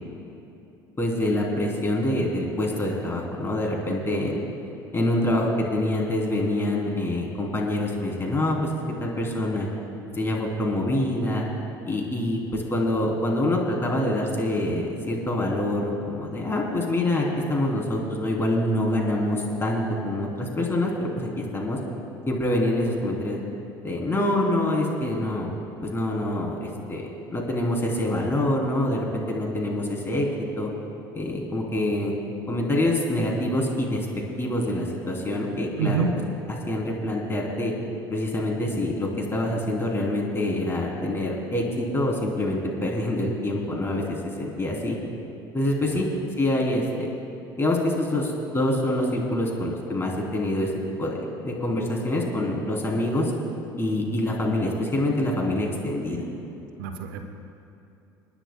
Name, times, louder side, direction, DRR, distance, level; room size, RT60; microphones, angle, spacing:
voice 1, 1.0-4.4 4.9-9.7 10.1-11.4 11.9-21.8 22.3-23.4 23.8-25.5 25.8-30.3 30.6-30.7 31.1-32.1 32.5-34.1 34.4-36.0 36.5-37.7 38.1-45.0 45.5-46.0 46.4-47.1 47.6-50.7 51.0-51.2 51.4-53.3 53.8-56.2, left 1 dB, 20° left, -1 dB, 3.1 m, -26 dB
voice 2, 35.8-36.2 45.9-46.0 56.8-57.3, right 5 dB, 75° right, 5 dB, 0.9 m, -27 dB
29.0 x 10.0 x 2.2 m, 2.8 s
hypercardioid pair, 70°, 11 cm